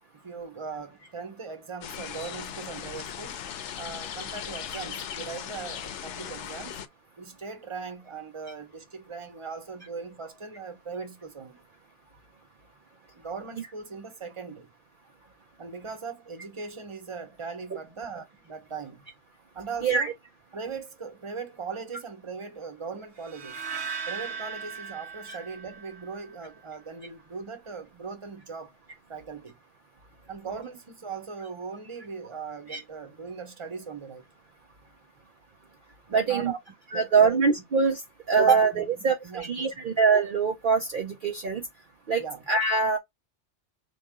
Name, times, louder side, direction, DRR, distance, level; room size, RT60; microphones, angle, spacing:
voice 1, 0.2-3.3 3.8-6.8 7.2-11.6 13.1-14.7 15.6-19.1 19.5-20.1 20.5-23.6 24.1-28.8 29.1-29.6 30.3-34.3 36.1-36.6 36.9-37.4 38.3-39.8 42.2-42.4, right 5 dB, 30° right, 1.0 m, -39 dB
sound 1, 1.8-6.9, left 9 dB, 90° left, 0.9 m, -38 dB
sound 2, 23.2-26.4, right 6 dB, 70° right, 1.1 m, -38 dB
voice 2, 36.1-36.5 36.9-38.0 38.3-41.6 42.1-42.2 42.5-43.0, right 5 dB, 50° right, 0.8 m, -23 dB
4.7 x 2.6 x 3.6 m
omnidirectional pair, 1.2 m